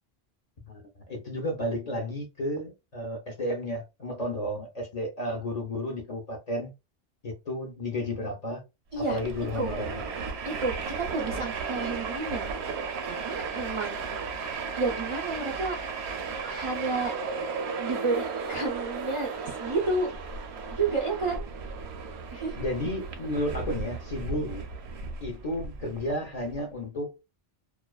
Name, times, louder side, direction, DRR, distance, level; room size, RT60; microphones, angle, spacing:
voice 1, 0.7-6.7 7.2-8.6 9.0-10.1 22.6-24.7 25.2-27.2, left 1 dB, 45° left, 0.5 m, -32 dB
Train, 9.0-26.6, right 5 dB, 75° right, 0.8 m, -35 dB
voice 2, 10.4-12.5 13.0-14.0 14.8-15.8 16.5-17.1 17.8-20.1 20.7-21.5 22.3-22.6, right 3 dB, 50° right, 0.4 m, -30 dB
2.4 x 2.3 x 2.2 m
omnidirectional pair, 1.1 m